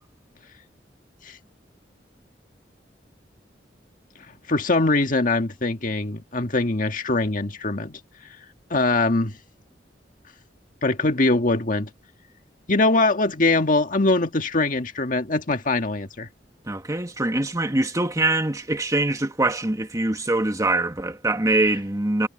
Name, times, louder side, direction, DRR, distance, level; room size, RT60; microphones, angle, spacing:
voice 1, 4.5-8.0 8.7-9.3 10.8-11.9 12.7-16.3, left 2 dB, 50° left, 1.8 m, -22 dB
voice 2, 16.7-22.3, right 2 dB, 20° right, 1.6 m, -23 dB
head